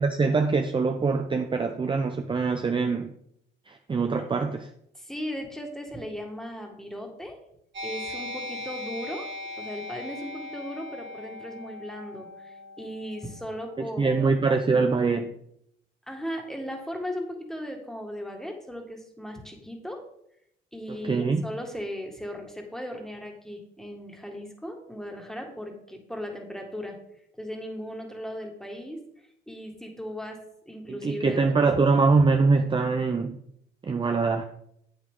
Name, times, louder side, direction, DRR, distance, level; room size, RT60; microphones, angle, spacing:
voice 1, 0.0-3.1 3.7-4.7 13.8-15.3 21.0-21.5 30.9-33.4 33.8-34.4, right 4 dB, 25° right, 6 dB, 0.6 m, -23 dB
voice 2, 4.9-7.4 7.8-9.3 9.6-14.8 16.1-20.1 20.7-27.0 27.4-29.0 29.5-32.0, equal, ahead, 2 dB, 1.8 m, -37 dB
sound 1, 7.7-14.8, left 1 dB, 65° right, 3.0 m, -40 dB
8.2 x 8.0 x 3.7 m, 0.73 s
cardioid pair, 90°, 20 cm